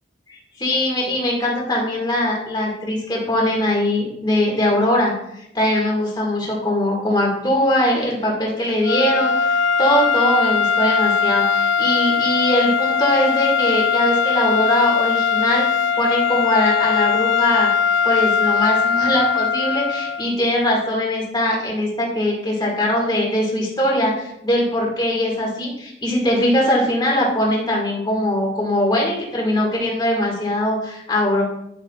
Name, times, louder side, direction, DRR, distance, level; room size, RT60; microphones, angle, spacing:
voice 1, 0.3-15.6 16.0-17.7 18.0-31.4, left 1 dB, 25° left, -3 dB, 1.9 m, -21 dB
sound 1, 8.8-20.3, left 6 dB, 90° left, 0.4 m, -20 dB
9.7 x 8.0 x 2.4 m, 0.81 s
head